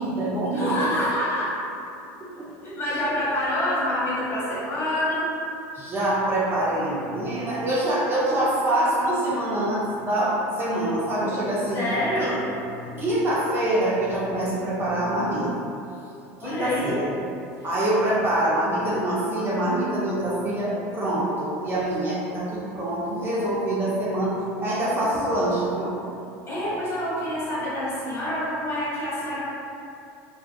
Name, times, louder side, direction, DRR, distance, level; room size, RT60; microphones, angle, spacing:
voice 1, 0.0-0.9 2.2-2.4 3.0-3.1 5.7-11.8 12.2-12.3 13.0-15.5 16.4-17.1 17.6-25.9, right 1 dB, 30° right, -7 dB, 0.5 m, -25 dB
voice 2, 0.5-1.5 2.6-5.3 11.7-12.4 12.8-13.0 16.4-17.0 26.5-29.4, left 1 dB, 35° left, -10 dB, 1.2 m, -27 dB
2.4 x 2.3 x 2.2 m, 2.7 s
supercardioid pair, 105°, 8 cm